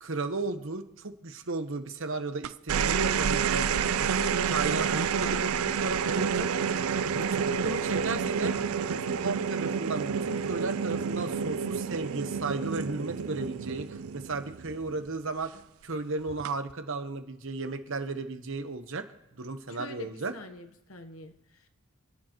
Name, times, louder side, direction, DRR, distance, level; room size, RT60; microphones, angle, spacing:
voice 1, 0.0-3.7 4.0-6.5 7.1-8.6 8.9-19.1 19.4-20.3, right 3 dB, 65° right, 8 dB, 1.1 m, -34 dB
sound 1, 2.4-15.0 16.3-16.7, right 6 dB, 90° right, 0.4 m, -29 dB
voice 2, 19.7-21.7, left 2 dB, 75° left, 6 dB, 1.2 m, -46 dB
27.5 x 10.5 x 3.1 m, 0.87 s
head